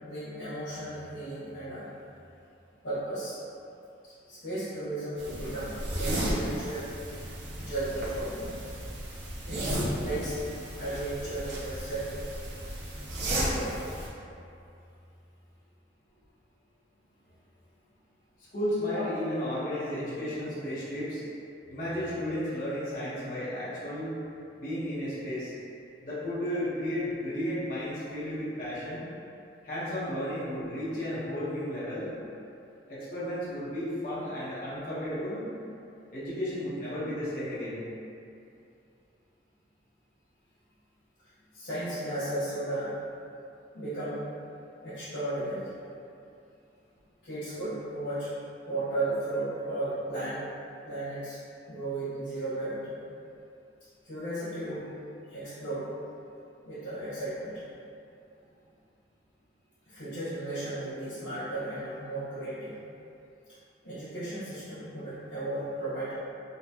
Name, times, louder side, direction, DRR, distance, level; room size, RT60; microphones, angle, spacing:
voice 1, 0.0-1.9 2.8-3.4 4.0-6.9 7.6-8.6 9.4-10.4 10.7-12.0 13.3-13.8 18.9-19.1 41.5-42.9 43.7-44.2 44.8-45.7 47.2-48.3 48.7-50.4 50.8-51.4 51.7-52.9 54.0-54.9 55.3-55.9 56.6-57.6 59.9-62.7 63.8-66.1, right 2 dB, 85° left, -17 dB, 1.3 m, -35 dB
sound 1, 5.2-14.1, right 1 dB, 70° right, 0.6 m, -34 dB
voice 2, 18.5-21.2 21.7-24.1 24.6-25.5 26.0-29.0 29.6-32.1 32.9-35.4 36.1-37.8, left 1 dB, 50° left, -11 dB, 1.0 m, -33 dB
3.9 x 2.2 x 2.8 m, 2.6 s
head